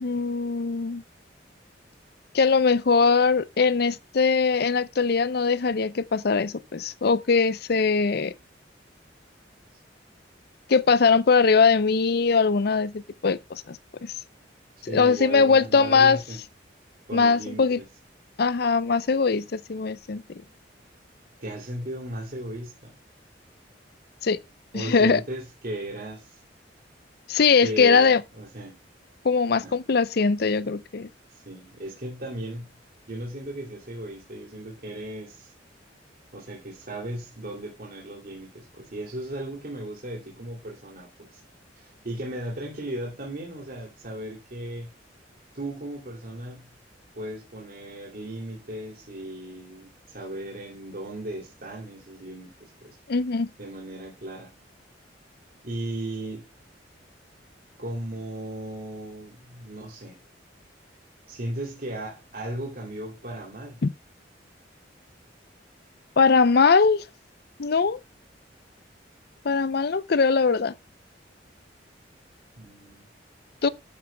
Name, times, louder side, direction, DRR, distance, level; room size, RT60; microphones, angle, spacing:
voice 1, 0.0-1.0 2.3-8.3 10.7-14.1 14.8-16.2 17.1-17.8 18.4-20.2 24.2-24.4 24.7-25.2 27.3-28.2 29.2-31.1 53.1-53.5 63.8-63.9 66.2-67.0 67.6-68.0 69.4-70.7 73.6-73.7, left 5 dB, 60° left, 0.5 m, -21 dB
voice 2, 14.8-16.4 17.1-17.9 21.4-22.9 24.7-26.4 27.6-28.8 29.6-30.0 31.3-32.7 33.1-35.5 36.3-41.4 41.7-44.9 45.5-46.7 47.1-52.9 53.6-54.5 55.6-56.5 57.8-60.2 61.3-63.8 72.5-73.0, right 1 dB, 50° right, 2.7 m, -36 dB
11.5 x 9.0 x 2.2 m
head